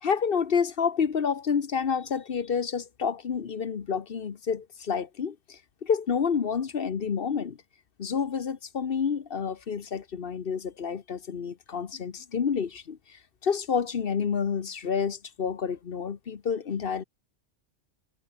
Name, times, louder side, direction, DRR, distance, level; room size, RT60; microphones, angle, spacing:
voice 1, 0.0-7.6 8.0-17.0, left 6 dB, 55° left, 1.2 m, -29 dB
omnidirectional pair, 1.2 m